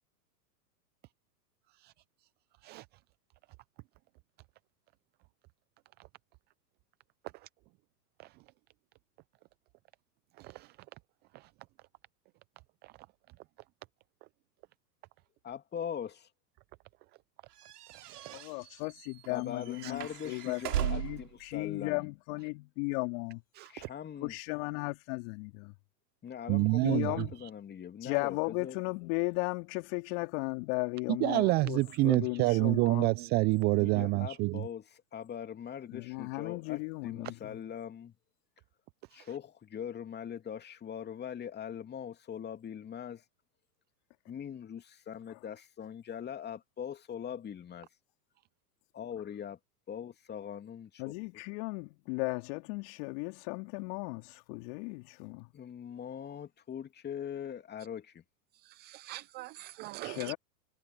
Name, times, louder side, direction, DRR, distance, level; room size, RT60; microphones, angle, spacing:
voice 1, 10.4-10.8 11.3-11.5 12.8-12.9 17.9-18.4 19.8-19.9 23.6-23.9 26.5-27.3 31.2-34.7 39.1-39.3 58.5-60.3, right 22 dB, 20° right, 0.5 m, -29 dB
voice 2, 15.4-16.3 19.3-22.1 23.7-24.3 26.2-28.8 33.7-34.8 35.1-38.1 39.1-43.2 44.3-47.9 48.9-49.6 49.9-51.1 55.5-58.2, left 8 dB, 20° left, 2.8 m, -41 dB
sound 1, 17.6-21.3, right 13 dB, 65° right, 4.0 m, -37 dB
voice 3, 18.3-23.4 24.2-25.7 26.8-27.3 28.0-33.1 35.9-37.6 45.3-45.4 51.0-55.5 60.0-60.4, left 32 dB, 45° left, 3.4 m, -36 dB
hypercardioid pair, 110°, 49 cm